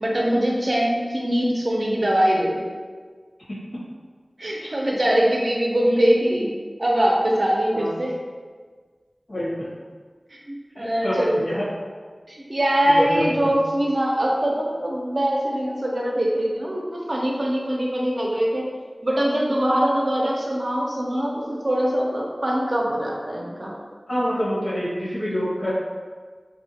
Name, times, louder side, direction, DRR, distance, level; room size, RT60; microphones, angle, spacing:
voice 1, 0.0-2.7 4.4-6.5 6.8-8.1 10.3-11.4 12.3-18.7 19.0-23.7, equal, 55° right, -2 dB, 0.5 m, -22 dB
voice 2, 9.3-9.7 10.8-11.6 12.9-13.5 24.1-25.7, equal, 80° left, -9 dB, 1.1 m, -26 dB
2.6 x 2.1 x 2.7 m, 1.5 s
wide cardioid pair, 45°, 0 cm